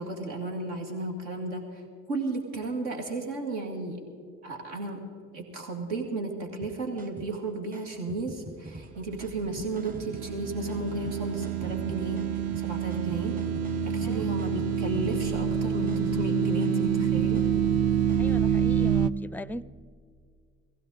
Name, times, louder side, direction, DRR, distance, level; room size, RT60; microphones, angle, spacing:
voice 1, 0.0-4.0 4.4-5.0 5.3-13.4 13.9-17.5, right 2 dB, 80° right, 1 dB, 2.1 m, -34 dB
sound 1, 6.6-18.4, right 1 dB, 25° right, 1.3 m, -47 dB
sound 2, 9.3-19.1, right 7 dB, 45° right, 0.6 m, -27 dB
voice 2, 18.2-19.6, left 1 dB, 5° left, 18 dB, 0.4 m, -40 dB
17.5 x 16.0 x 4.1 m, 2.1 s
hypercardioid pair, 55°, 34 cm